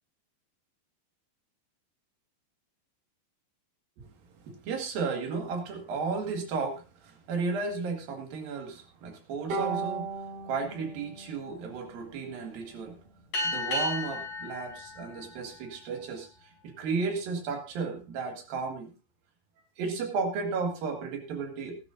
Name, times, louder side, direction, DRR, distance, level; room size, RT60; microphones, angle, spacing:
voice 1, 4.4-13.0 13.4-18.9 19.8-21.8, right 4 dB, 75° right, 3 dB, 3.7 m, -34 dB
Bowed string instrument, 9.5-12.8, right 4 dB, 60° right, 6.1 m, -37 dB
sound 1, 13.3-16.3, left 2 dB, 55° left, 6.3 m, -34 dB
19.0 x 11.5 x 2.6 m, 0.31 s
omnidirectional pair, 4.1 m